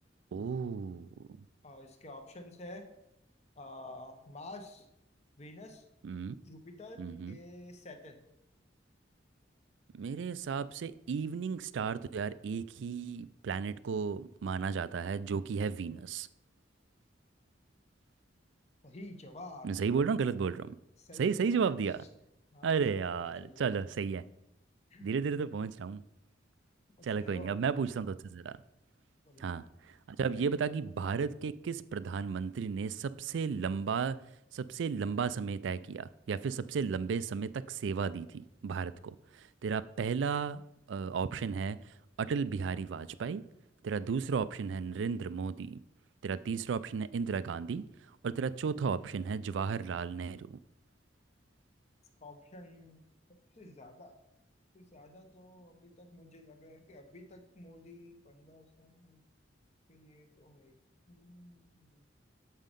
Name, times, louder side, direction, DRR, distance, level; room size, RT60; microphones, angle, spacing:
voice 1, 0.3-1.1 6.0-6.4 7.0-7.4 9.9-16.3 19.6-20.7 21.1-22.0 22.6-24.2 25.0-26.0 27.0-28.5 29.4-34.2 34.5-40.6 40.9-41.8 42.2-43.4 43.8-45.8 46.2-47.8 48.2-50.6, right 5 dB, 75° right, 0.4 m, -34 dB
voice 2, 1.6-2.8 3.6-4.9 5.4-5.8 6.5-7.0 7.3-8.2 18.8-19.7 21.0-21.8 22.5-23.8 24.9-25.1 27.0-27.6 29.3-29.5 52.2-53.0 53.6-54.1 54.7-59.2 59.9-60.8 61.1-62.0, left 1 dB, 35° left, 0.9 m, -50 dB
7.2 x 5.6 x 5.2 m
head